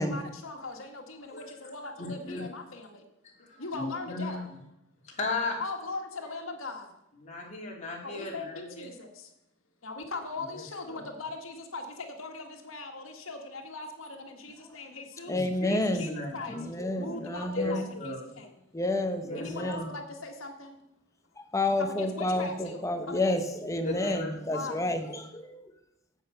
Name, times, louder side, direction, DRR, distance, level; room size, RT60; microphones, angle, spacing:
voice 1, 0.0-3.0 3.5-4.5 5.6-6.9 8.0-9.3 9.8-15.5 15.8-16.6 17.0-18.5 19.3-20.8 21.8-23.4 24.5-24.8, left 3 dB, 75° left, 3 dB, 1.7 m, -40 dB
voice 2, 2.0-2.4 3.4-4.4 5.0-5.6 7.2-8.9 10.9-11.0 15.3-16.4 17.6-18.2 19.2-19.7 23.8-24.6, left 2 dB, 35° left, -2 dB, 2.6 m, -35 dB
voice 3, 15.3-16.1 16.5-17.9 18.7-19.9 21.5-25.2, left 2 dB, 15° left, 6 dB, 0.9 m, -30 dB
8.8 x 8.0 x 5.6 m, 0.82 s
head